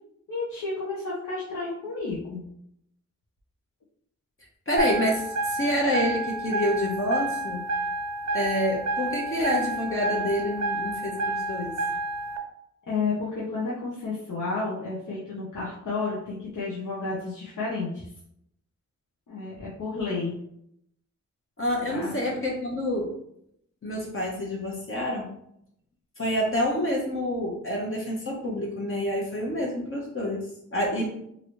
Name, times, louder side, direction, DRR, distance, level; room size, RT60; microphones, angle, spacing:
voice 1, 0.3-2.4 12.9-18.1 19.3-20.4 21.9-22.2, left 3 dB, 85° left, -7 dB, 0.8 m, -31 dB
voice 2, 4.7-7.6 8.3-11.7 21.6-23.1 23.8-25.3 26.2-31.1, equal, 45° left, -3 dB, 0.8 m, -28 dB
sound 1, 4.8-12.4, right 2 dB, 65° right, 0.5 m, -30 dB
3.0 x 2.7 x 2.9 m, 0.74 s
wide cardioid pair, 75°, 30 cm